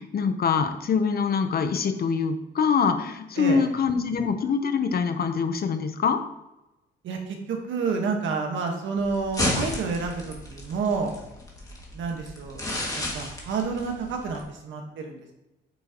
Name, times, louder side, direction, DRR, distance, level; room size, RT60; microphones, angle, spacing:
voice 1, 0.0-6.2, left 6 dB, 50° left, 8 dB, 0.9 m, -24 dB
voice 2, 3.4-3.7 7.0-11.1 11.9-12.6 12.9-15.3, right 4 dB, 75° right, 3 dB, 1.5 m, -29 dB
sound 1, 9.0-14.4, left 1 dB, 15° left, 2.1 m, -33 dB
8.7 x 6.4 x 3.0 m, 0.95 s
cardioid pair, 90°, 20 cm